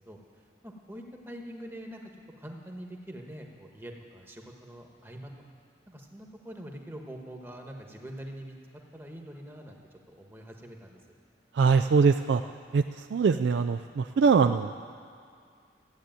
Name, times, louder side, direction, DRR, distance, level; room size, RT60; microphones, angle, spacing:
voice 1, 0.6-2.0 2.4-5.3 5.9-8.6 8.9-9.8 10.1-11.0, equal, 15° right, 2 dB, 1.2 m, -44 dB
voice 2, 11.5-12.4 12.7-14.9, right 5 dB, 80° right, 8 dB, 0.3 m, -23 dB
14.0 x 8.3 x 9.0 m, 2.2 s
head